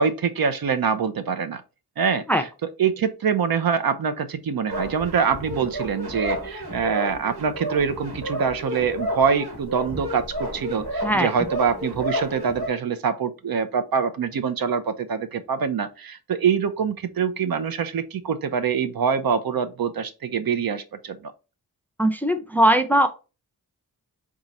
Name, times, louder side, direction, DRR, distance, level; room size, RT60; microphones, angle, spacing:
voice 1, 0.0-1.6 2.0-2.5 2.8-21.3, right 6 dB, 65° right, 0.6 m, -24 dB
sound 1, 4.7-12.7, equal, 85° right, 1.3 m, -31 dB
voice 2, 22.0-23.1, right 1 dB, 5° left, 0.5 m, -19 dB
3.8 x 2.4 x 4.0 m
wide cardioid pair, 60°, 38 cm